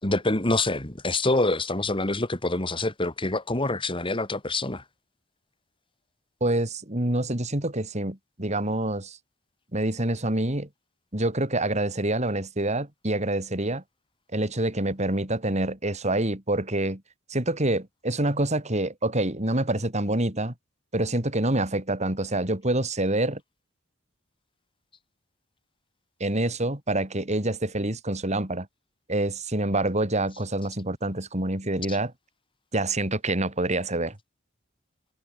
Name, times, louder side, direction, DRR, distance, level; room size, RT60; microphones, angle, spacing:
voice 1, 0.0-4.8 31.9-32.0, left 2 dB, 25° left, 2.5 m, -26 dB
voice 2, 6.4-9.2 9.7-10.7 11.1-13.8 14.3-17.0 17.3-20.5 20.9-23.4 26.2-28.7 29.1-32.1 32.7-34.2, right 1 dB, 35° right, 3.6 m, -26 dB
head